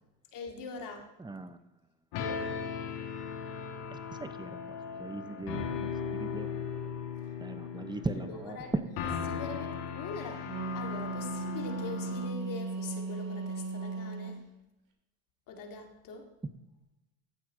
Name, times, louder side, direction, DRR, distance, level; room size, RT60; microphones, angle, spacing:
voice 1, 0.3-1.1 8.1-9.1 9.3-10.5 10.7-14.4 15.5-16.3, left 4 dB, 50° left, 2 dB, 2.6 m, -43 dB
voice 2, 1.2-1.6 3.9-4.7 5.0-5.9 6.2-6.5 7.4-8.8 16.4-16.5, right 2 dB, 10° right, 11 dB, 0.9 m, -37 dB
sound 1, 2.1-12.3, left 6 dB, 70° left, 2.4 m, -38 dB
Wind instrument woodwind instrument, 10.2-14.4, right 4 dB, 50° right, 3.3 m, -37 dB
15.0 x 8.6 x 4.0 m, 0.96 s
supercardioid pair, 85°, 41 cm